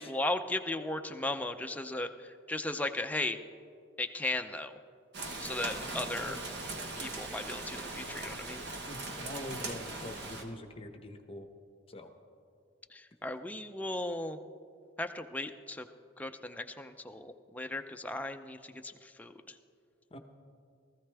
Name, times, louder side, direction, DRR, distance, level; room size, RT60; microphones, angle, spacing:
voice 1, 0.0-3.4 4.0-4.7 5.4-6.4 7.0-8.6 12.9-14.4 15.0-15.9 16.2-19.5, left 2 dB, 10° left, 6 dB, 0.5 m, -36 dB
Rain, 5.1-10.4, right 2 dB, 60° right, 1.3 m, -40 dB
voice 2, 5.5-6.4 6.9-7.1 8.8-11.5 11.9-12.1 20.1-20.2, left 1 dB, 30° left, 6 dB, 0.9 m, -45 dB
18.0 x 14.5 x 3.4 m, 2.3 s
head